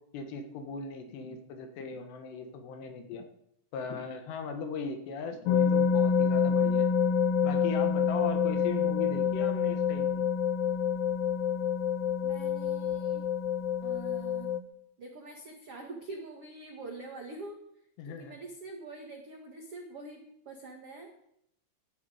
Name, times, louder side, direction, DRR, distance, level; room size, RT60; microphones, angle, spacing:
voice 1, 0.1-3.3 3.7-6.9 7.4-10.2 18.0-18.4, left 5 dB, 70° left, 6 dB, 3.2 m, -38 dB
sound 1, 5.5-14.6, left 7 dB, 85° left, 3.4 m, -27 dB
voice 2, 12.2-13.2 13.8-14.5 15.0-17.5 18.0-21.3, right 2 dB, 80° right, 1 dB, 1.3 m, -45 dB
17.0 x 11.5 x 5.0 m, 0.75 s
omnidirectional pair, 5.5 m